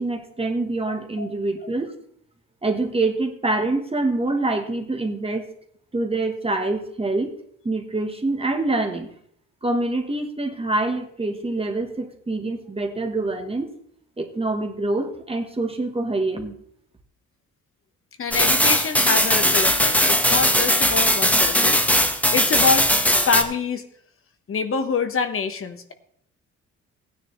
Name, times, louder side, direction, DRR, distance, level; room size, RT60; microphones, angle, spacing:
voice 1, 0.0-1.9 2.6-5.5 5.9-7.3 7.6-9.1 9.6-13.7 14.2-16.6, right 2 dB, 20° right, 4 dB, 1.3 m, -25 dB
voice 2, 0.9-1.3 18.2-22.0 22.3-22.9 23.2-23.8 24.5-25.9, left 5 dB, 45° left, 8 dB, 1.2 m, -25 dB
sound 1, 18.3-23.4, equal, 5° left, 1.3 m, -19 dB
15.5 x 9.8 x 3.2 m, 0.67 s
cardioid pair, 90°, 30 cm